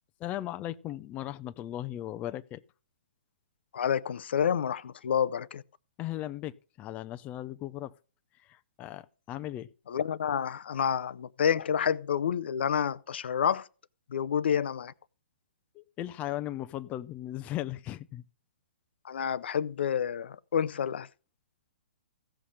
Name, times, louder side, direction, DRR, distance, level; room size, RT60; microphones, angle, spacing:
voice 1, 0.2-2.6 6.0-7.9 8.4-9.7 15.7-18.2, left 13 dB, 25° left, 0.5 m, -37 dB
voice 2, 3.7-5.6 9.9-13.7 14.1-14.9 19.0-21.1, left 8 dB, 70° left, 0.5 m, -29 dB
15.5 x 5.6 x 6.5 m
hypercardioid pair, 135°, 6 cm